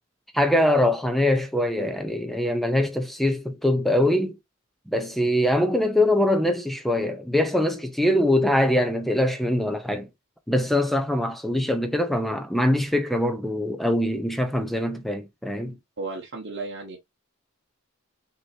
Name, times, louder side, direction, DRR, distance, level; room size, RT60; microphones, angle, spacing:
voice 1, 0.3-4.4 4.9-10.1 10.5-15.8, left 1 dB, ahead, 0.6 m, -23 dB
voice 2, 16.0-17.0, right 3 dB, 55° right, 1.3 m, -34 dB
6.2 x 3.0 x 2.6 m
head